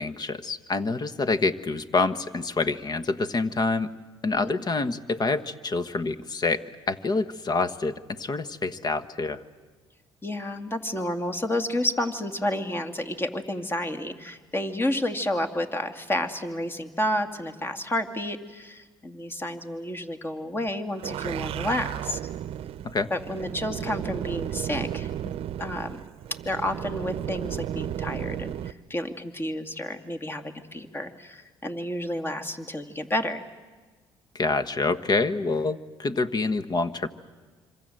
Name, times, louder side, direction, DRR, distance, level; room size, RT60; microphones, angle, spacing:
voice 1, 0.0-3.9 4.2-6.6 6.9-9.4 22.8-23.1 34.3-37.1, left 3 dB, 40° left, 13 dB, 1.3 m, -27 dB
voice 2, 10.2-22.2 23.1-25.1 25.6-26.0 26.5-33.4, left 1 dB, 20° left, 7 dB, 2.2 m, -30 dB
sound 1, 20.9-28.7, right 11 dB, 60° right, 0.7 m, -34 dB
26.5 x 25.0 x 7.8 m, 1.4 s
supercardioid pair, 70°, 11 cm